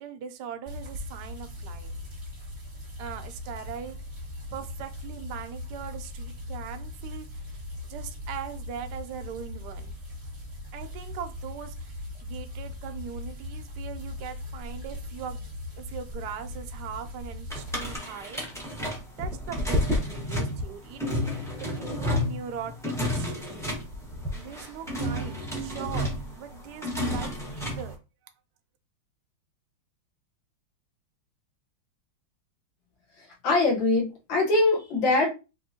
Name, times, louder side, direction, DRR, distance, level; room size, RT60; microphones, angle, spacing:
voice 1, 0.0-1.9 3.0-4.0 4.5-10.0 10.7-11.9 12.2-15.5 15.8-18.5 19.2-23.8 24.4-28.0, right 8 dB, 70° right, 7 dB, 1.0 m, -40 dB
sound 1, 0.7-18.0, left 2 dB, 20° right, 0.9 m, -39 dB
sound 2, 17.5-27.9, left 1 dB, 5° left, 0.4 m, -31 dB
voice 2, 33.4-35.3, left 2 dB, 70° left, -2 dB, 1.8 m, -22 dB
4.3 x 3.0 x 2.8 m, 0.29 s
omnidirectional pair, 2.2 m